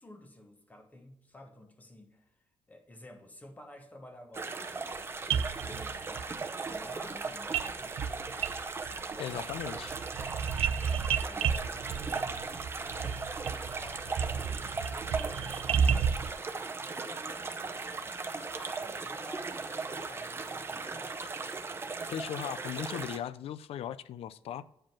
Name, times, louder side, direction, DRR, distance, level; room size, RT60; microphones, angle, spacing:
voice 1, 0.0-4.6 5.3-8.0 8.9-9.4 10.9-16.1 16.8-21.2, left 1 dB, 15° left, 1.2 m, -52 dB
sound 1, 4.3-23.2, right 4 dB, 25° right, 0.7 m, -38 dB
sound 2, 5.0-5.1 5.3-6.2 7.5-7.7 8.0-9.0 9.3-16.3, right 7 dB, 75° right, 0.5 m, -32 dB
voice 2, 9.2-10.0 22.1-24.7, left 10 dB, 80° left, 0.5 m, -38 dB
9.1 x 5.0 x 6.0 m
wide cardioid pair, 160°, 10 cm